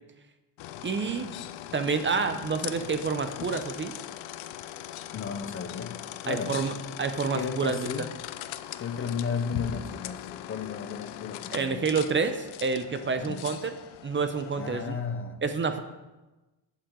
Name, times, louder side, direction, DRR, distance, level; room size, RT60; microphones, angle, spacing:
sound 1, 0.6-15.0, left 12 dB, 85° left, 0.7 m, -40 dB
voice 1, 0.8-1.3 1.7-3.9 6.3-6.7 7.0-7.9 11.5-13.7 14.0-15.0 15.4-15.8, right 5 dB, 25° right, 9 dB, 0.5 m, -28 dB
voice 2, 5.1-6.7 7.3-8.1 8.8-12.0 13.0-13.6 14.6-15.4, left 6 dB, 30° left, 8 dB, 0.4 m, -34 dB
11.5 x 8.9 x 3.7 m, 1.1 s
cardioid pair, 160°, 46 cm